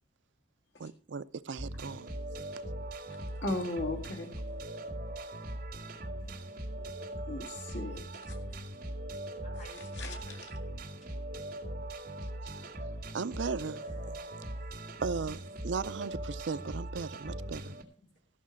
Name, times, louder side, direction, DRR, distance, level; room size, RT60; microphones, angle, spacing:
voice 1, 0.8-2.1 12.4-12.6 13.1-13.8 15.0-17.7, right 5 dB, 90° right, 0.5 m, -37 dB
sound 1, 1.6-17.8, right 1 dB, 50° right, 2.2 m, -40 dB
voice 2, 3.4-4.3 7.3-8.6 9.8-10.4, left 2 dB, 90° left, 2.0 m, -37 dB
voice 3, 9.4-10.4 13.8-14.3 17.4-18.1, left 1 dB, 45° left, 5.4 m, -55 dB
14.0 x 6.5 x 6.1 m
head